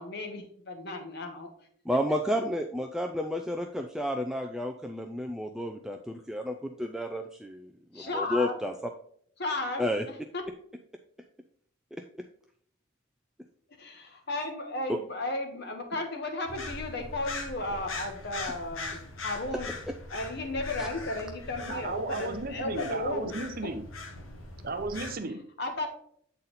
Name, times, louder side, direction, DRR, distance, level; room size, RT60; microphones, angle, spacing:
voice 1, 0.0-1.5 7.9-8.5 9.4-10.4 13.8-19.7 20.1-23.3 23.6-23.7 25.6-25.9, left 2 dB, 55° left, 4 dB, 1.2 m, -34 dB
voice 2, 1.9-8.7 9.8-10.0 11.9-12.0 14.9-15.0 20.8-20.9, equal, ahead, 4 dB, 0.3 m, -31 dB
sound 1, 16.5-25.1, left 2 dB, 80° left, 1.2 m, -41 dB
voice 3, 21.7-23.8 24.6-25.4, right 2 dB, 45° right, 7 dB, 0.7 m, -34 dB
7.9 x 4.1 x 4.0 m, 0.64 s
head